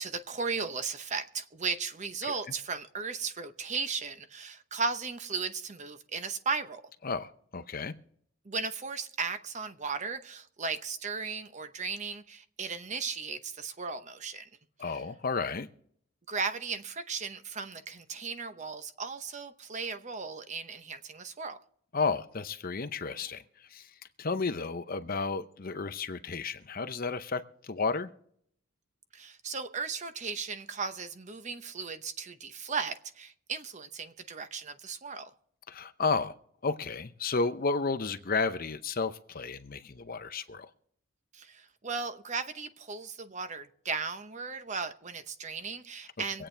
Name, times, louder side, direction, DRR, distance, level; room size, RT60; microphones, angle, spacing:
voice 1, 0.0-6.8 8.4-14.5 14.9-15.0 16.3-21.6 29.1-35.3 41.3-46.5, right 5 dB, 35° right, 0.8 m, -36 dB
voice 2, 7.0-7.9 14.8-15.7 21.9-23.9 24.2-28.1 35.7-36.3 36.6-40.7 46.4-46.5, left 4 dB, 45° left, 0.7 m, -32 dB
24.5 x 8.7 x 3.3 m
head